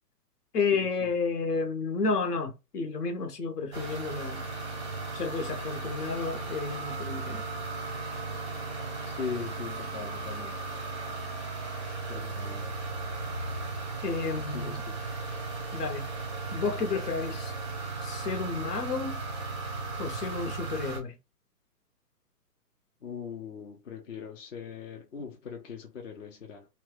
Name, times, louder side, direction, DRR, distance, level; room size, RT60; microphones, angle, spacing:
voice 1, 0.5-4.4 5.1-7.4 14.0-14.8 15.7-16.1 16.5-17.5 18.0-19.2 20.0-21.2, left 4 dB, 70° left, 1.0 m, -31 dB
sound 1, 3.7-21.0, right 3 dB, 20° right, 0.5 m, -36 dB
voice 2, 9.0-10.6 12.1-12.7 14.4-15.0 23.0-26.7, left 6 dB, 50° left, 0.7 m, -40 dB
2.8 x 2.3 x 3.1 m
hypercardioid pair, 155°, 48 cm